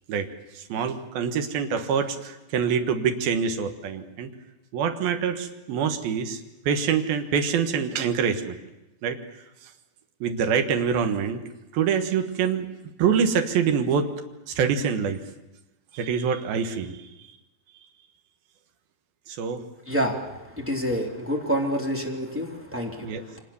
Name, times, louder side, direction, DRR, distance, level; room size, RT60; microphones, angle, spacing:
voice 1, 0.6-4.3 4.7-6.4 6.7-8.6 9.0-9.2 10.2-11.4 11.7-12.7 13.0-14.1 14.5-15.2 15.9-17.1 19.3-19.6 23.0-23.2, right 7 dB, 80° right, 6 dB, 3.5 m, -25 dB
voice 2, 19.9-23.4, equal, 5° right, 0 dB, 2.5 m, -28 dB
29.0 x 25.0 x 7.1 m, 0.98 s
omnidirectional pair, 4.2 m